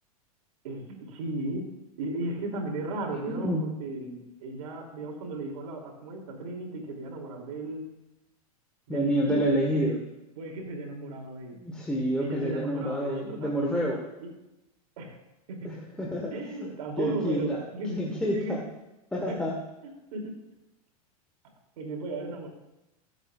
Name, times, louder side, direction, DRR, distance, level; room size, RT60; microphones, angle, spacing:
voice 1, 0.6-1.7 2.0-7.8 8.9-9.9 10.4-11.6 12.2-13.9 14.2-14.3 15.0-15.1 15.5-15.8 16.3-18.6 19.3-19.4 19.8-20.4 21.8-22.5, right 2 dB, 70° right, 1 dB, 2.9 m, -35 dB
voice 2, 3.4-3.8 8.9-10.0 11.5-14.0 15.6-16.7 17.0-17.6 18.0-18.6 19.1-19.6, equal, 5° left, -2 dB, 1.4 m, -28 dB
19.5 x 8.1 x 2.4 m, 0.93 s
hypercardioid pair, 125°, 19 cm